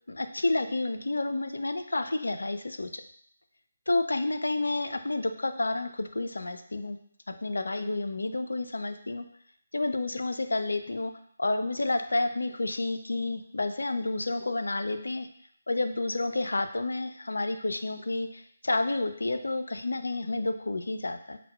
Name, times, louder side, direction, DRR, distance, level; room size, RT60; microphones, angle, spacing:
voice 1, 0.1-3.0 3.9-7.0 7.3-9.3 9.7-11.1 11.4-15.3 15.7-21.4, left 2 dB, 70° left, 7 dB, 0.4 m, -30 dB
5.5 x 2.2 x 2.2 m, 0.63 s
figure-of-eight pair, 150°, 0 cm